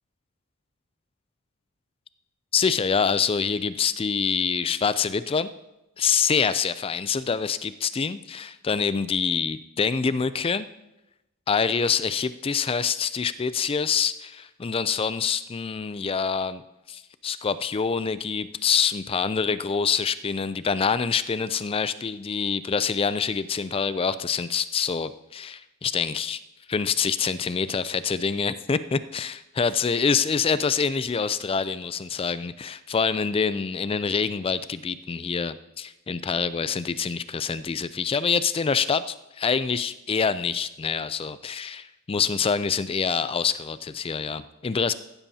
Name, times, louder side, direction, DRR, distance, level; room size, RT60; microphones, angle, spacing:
voice 1, 2.5-5.5 6.0-10.7 11.5-16.6 16.9-26.4 26.7-44.9, left 6 dB, 25° left, 14 dB, 0.3 m, -26 dB
16.0 x 12.5 x 2.8 m, 0.95 s
head